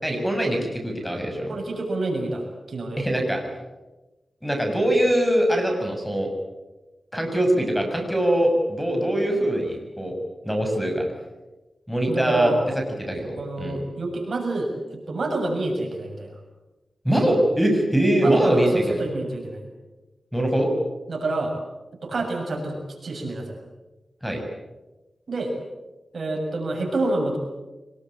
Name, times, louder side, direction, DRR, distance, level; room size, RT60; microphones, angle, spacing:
voice 1, 0.0-1.6 3.0-3.4 4.4-6.3 7.1-10.1 10.4-11.0 11.9-12.5 13.0-13.8 17.0-19.0 20.3-20.7 24.2-24.4, right 1 dB, ahead, 3 dB, 6.5 m, -22 dB
voice 2, 1.5-3.0 12.1-12.6 13.4-16.4 18.2-19.7 21.1-21.6 22.0-23.6 25.3-25.5 26.1-27.4, right 2 dB, 65° right, 1 dB, 6.9 m, -27 dB
24.0 x 21.0 x 8.6 m, 1.1 s
wide cardioid pair, 85°, 0 cm